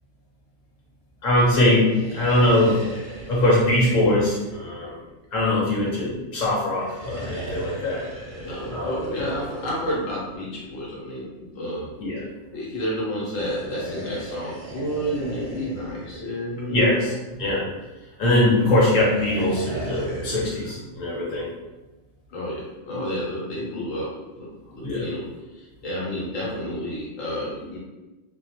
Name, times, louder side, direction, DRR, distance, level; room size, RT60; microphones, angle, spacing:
voice 1, 1.2-2.8 3.3-4.9 5.3-8.1 8.7-9.1 12.0-12.2 16.7-17.1 17.4-17.6 18.2-21.5 24.8-25.1, left 1 dB, 40° left, -6 dB, 0.9 m, -21 dB
sound 1, 1.8-5.4 6.7-11.0 13.2-17.2 18.5-20.8, right 1 dB, 50° right, 0.6 m, -37 dB
voice 2, 8.4-11.9 12.5-16.8 22.3-27.8, equal, 80° left, -5 dB, 1.1 m, -31 dB
2.3 x 2.1 x 2.9 m, 1.1 s
omnidirectional pair, 1.3 m